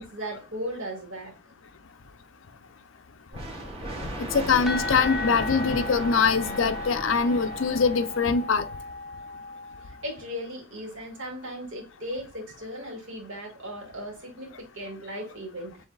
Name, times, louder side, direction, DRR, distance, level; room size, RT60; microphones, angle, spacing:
voice 1, 0.0-1.3 9.8-15.7, equal, 65° right, 2.0 m, -37 dB
sound 1, 3.3-8.9, right 1 dB, 30° right, 2.0 m, -37 dB
voice 2, 4.2-8.7, left 5 dB, 70° left, 0.5 m, -23 dB
sound 2, 4.7-10.3, left 3 dB, ahead, 0.7 m, -36 dB
7.2 x 2.8 x 2.3 m
head